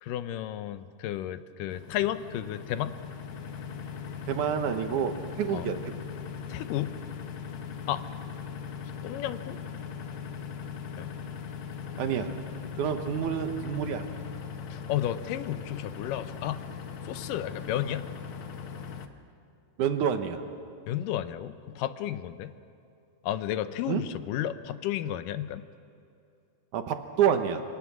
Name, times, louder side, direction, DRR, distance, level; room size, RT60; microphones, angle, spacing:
voice 1, 0.0-2.9 5.5-5.7 6.5-6.9 7.9-8.0 9.0-9.6 11.0-11.1 14.7-16.6 17.1-18.0 20.9-22.5 23.2-25.6, left 12 dB, 85° left, 12 dB, 2.4 m, -32 dB
sound 1, 1.7-19.1, left 6 dB, 65° left, 1.3 m, -39 dB
voice 2, 4.3-5.9 12.0-12.4 12.8-14.0 19.8-20.4 23.9-24.0 26.7-27.6, right 8 dB, 70° right, 7 dB, 2.5 m, -28 dB
26.5 x 25.0 x 6.1 m, 2.6 s
omnidirectional pair, 3.8 m